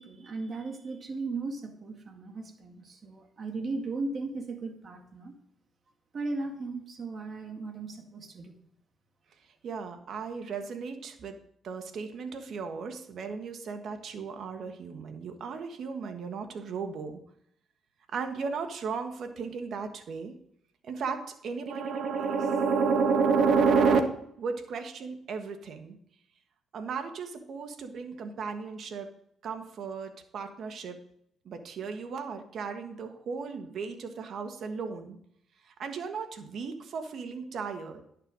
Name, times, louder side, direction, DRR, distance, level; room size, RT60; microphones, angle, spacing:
voice 1, 0.0-5.3 6.1-8.5, right 3 dB, 45° right, 4 dB, 2.0 m, -37 dB
voice 2, 9.6-11.4 11.6-17.2 18.1-20.3 20.8-24.0 24.4-26.0 26.7-29.1 29.4-31.0 31.4-35.2 35.8-38.0, right 5 dB, 65° right, 7 dB, 1.4 m, -32 dB
11.0 x 6.7 x 4.8 m, 0.71 s
cardioid pair, 90°, 0 cm